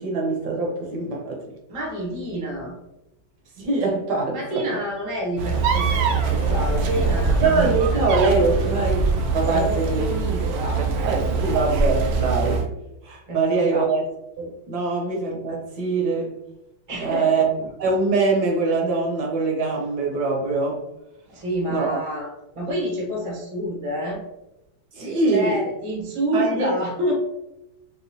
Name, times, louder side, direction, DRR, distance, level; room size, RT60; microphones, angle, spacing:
voice 1, 0.0-1.4 3.6-4.8 7.4-9.1 9.3-10.1 11.0-12.7 13.0-14.0 14.4-16.3 17.0-17.5 17.8-20.8 21.7-22.1 24.9-25.6 26.3-26.8, right 3 dB, 65° right, 0 dB, 1.2 m, -23 dB
voice 2, 1.7-2.8 4.3-8.1 9.5-10.9 13.3-13.9 16.9-17.4 21.3-24.2 25.3-27.1, right 1 dB, 40° right, -1 dB, 0.4 m, -28 dB
sound 1, 5.4-12.7, right 4 dB, 85° right, 0.8 m, -23 dB
Sliding door, 5.5-11.4, left 2 dB, 75° left, 1.0 m, -34 dB
4.7 x 2.1 x 2.7 m, 0.88 s
omnidirectional pair, 2.1 m